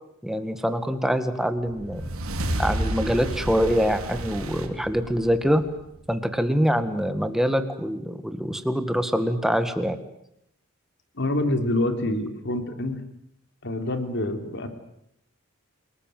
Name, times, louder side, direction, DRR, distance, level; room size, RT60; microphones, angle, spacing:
voice 1, 0.2-2.0 2.6-5.6 6.1-10.0, equal, ahead, 9 dB, 1.9 m, -24 dB
sound 1, 1.6-6.2, right 1 dB, 80° right, 3.5 m, -31 dB
voice 2, 11.2-13.0 13.6-14.7, left 1 dB, 55° left, 7 dB, 3.4 m, -26 dB
29.5 x 19.5 x 9.4 m, 0.78 s
head